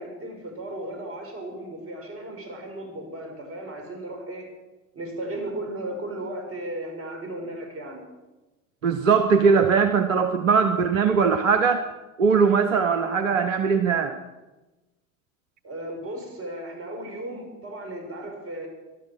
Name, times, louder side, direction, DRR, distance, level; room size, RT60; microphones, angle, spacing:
voice 1, 0.0-4.5 4.9-8.0 15.6-18.7, right 1 dB, 35° right, 4 dB, 5.8 m, -35 dB
voice 2, 8.8-11.8 12.2-14.2, right 5 dB, 85° right, 10 dB, 0.9 m, -20 dB
18.0 x 12.5 x 6.5 m, 1.1 s
figure-of-eight pair, 60°, 38 cm